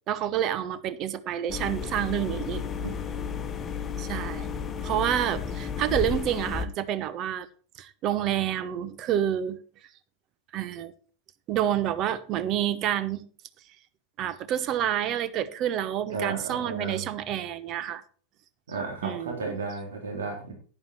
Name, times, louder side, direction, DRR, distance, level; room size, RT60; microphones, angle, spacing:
voice 1, 0.1-2.6 4.0-4.5 4.8-7.5 7.8-9.6 10.5-10.9 11.5-13.2 14.2-18.0 19.0-19.6, right 10 dB, 35° right, 1.1 m, -28 dB
sound 1, 1.5-6.7, left 6 dB, 20° left, 1.3 m, -33 dB
voice 2, 16.1-17.0 18.7-20.5, right 4 dB, 65° right, 3.5 m, -33 dB
11.0 x 10.0 x 4.4 m
figure-of-eight pair, 90°, 0 cm